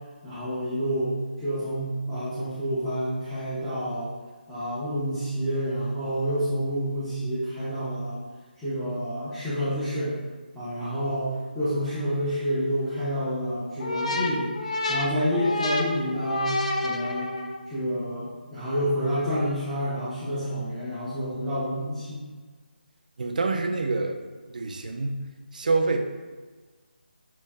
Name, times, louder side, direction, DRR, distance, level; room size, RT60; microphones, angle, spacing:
voice 1, 0.2-4.1 4.5-8.2 8.6-10.1 10.5-14.5 14.9-16.6 16.8-17.3 17.7-22.2, equal, 5° left, -15 dB, 0.7 m, -28 dB
sound 1, 13.8-17.7, left 2 dB, 40° left, 0.4 m, -29 dB
voice 2, 23.2-24.2 24.5-26.0, right 3 dB, 50° right, 4 dB, 0.4 m, -27 dB
6.7 x 2.3 x 2.3 m, 1.4 s
figure-of-eight pair, 155°, 6 cm